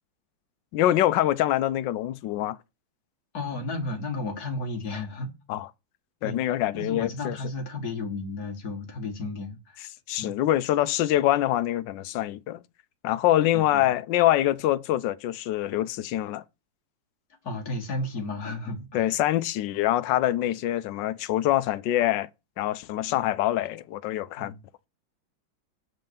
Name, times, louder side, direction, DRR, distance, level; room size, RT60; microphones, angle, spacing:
voice 1, 0.7-2.6 5.5-5.7 6.2-7.4 10.1-12.6 13.0-16.4 18.9-22.3 22.6-24.5, left 13 dB, 75° left, 1.2 m, -25 dB
voice 2, 3.3-5.3 6.2-6.4 6.7-9.9 10.2-10.4 13.5-13.8 17.4-19.1 23.0-23.2 24.4-24.6, left 2 dB, 50° left, 2.0 m, -33 dB
8.0 x 4.2 x 6.8 m
omnidirectional pair, 2.2 m